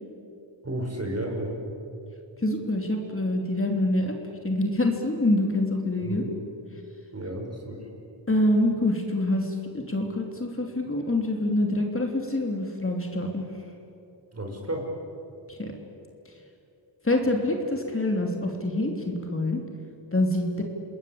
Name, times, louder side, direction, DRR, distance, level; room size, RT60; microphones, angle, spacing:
voice 1, 0.6-1.6 6.0-6.3 7.1-7.9 14.3-14.9, right 1 dB, 30° right, 1 dB, 5.8 m, -32 dB
voice 2, 2.4-4.1 4.4-6.2 8.3-13.4 15.5-15.7 17.0-19.6 20.1-20.6, left 1 dB, 25° left, 2 dB, 3.3 m, -26 dB
28.5 x 20.5 x 8.7 m, 2.9 s
wide cardioid pair, 85°, 46 cm